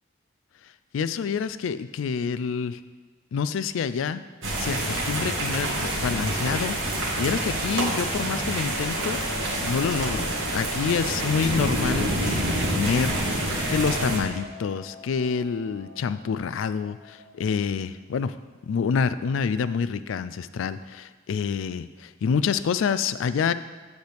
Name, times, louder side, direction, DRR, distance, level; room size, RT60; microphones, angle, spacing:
voice 1, 0.9-2.8 3.3-4.2 4.6-6.8 7.2-10.3 10.5-18.4 18.6-23.5, left 6 dB, 80° left, 13 dB, 0.3 m, -27 dB
sound 1, 4.4-14.2, right 1 dB, 75° right, 1.6 m, -27 dB
sound 2, 8.5-17.7, right 1 dB, 60° left, 1.4 m, -43 dB
8.0 x 7.7 x 3.4 m, 1.4 s
head